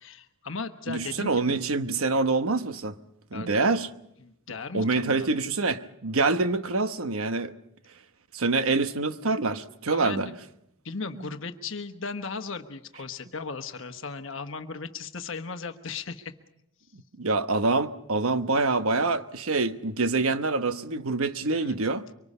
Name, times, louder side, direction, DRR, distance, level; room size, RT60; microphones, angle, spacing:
voice 1, 0.0-1.6 3.3-3.5 4.2-5.3 9.9-10.4 10.8-16.3 21.6-21.8, left 4 dB, 65° left, 1.2 m, -37 dB
voice 2, 0.9-3.0 3.3-3.9 4.7-7.5 8.3-10.3 11.2-11.3 17.2-22.0, right 3 dB, 85° right, 1.1 m, -26 dB
24.5 x 24.5 x 5.5 m
head